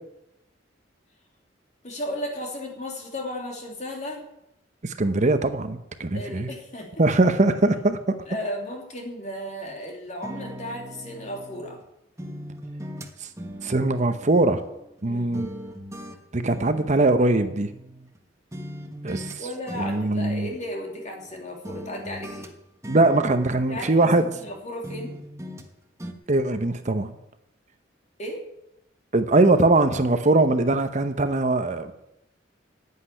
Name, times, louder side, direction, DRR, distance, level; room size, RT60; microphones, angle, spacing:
voice 1, 1.8-4.3 6.1-7.0 8.3-11.8 15.0-15.5 19.4-22.5 23.7-25.1 28.2-28.4, left 1 dB, 40° left, 1 dB, 3.0 m, -34 dB
voice 2, 4.8-6.5 7.0-8.1 13.6-14.6 15.0-15.5 16.3-17.7 19.0-19.4 19.8-20.5 22.9-24.2 26.3-27.1 29.1-31.9, right 2 dB, 40° right, 9 dB, 0.8 m, -21 dB
sound 1, 10.2-11.8 12.2-15.0 15.3-18.2 18.5-19.4 19.7-21.3 21.6-24.5 24.8-25.7 26.0-26.1, equal, 15° right, 1.3 m, -40 dB
10.0 x 8.4 x 10.0 m, 0.84 s
head